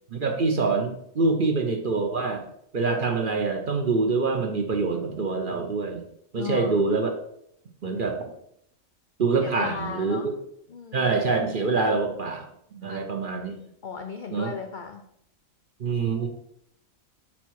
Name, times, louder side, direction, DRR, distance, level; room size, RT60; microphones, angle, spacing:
voice 1, 0.1-2.5 2.7-6.0 6.3-7.1 7.8-8.2 9.2-10.3 10.9-12.5 12.7-13.6 14.3-14.5 15.8-16.3, right 4 dB, 50° right, 3 dB, 0.7 m, -25 dB
voice 2, 6.4-6.8 9.4-10.3 10.7-11.1 12.8-13.0 13.8-15.0, left 6 dB, 75° left, 5 dB, 0.4 m, -36 dB
5.8 x 4.2 x 4.6 m, 0.73 s
omnidirectional pair, 1.5 m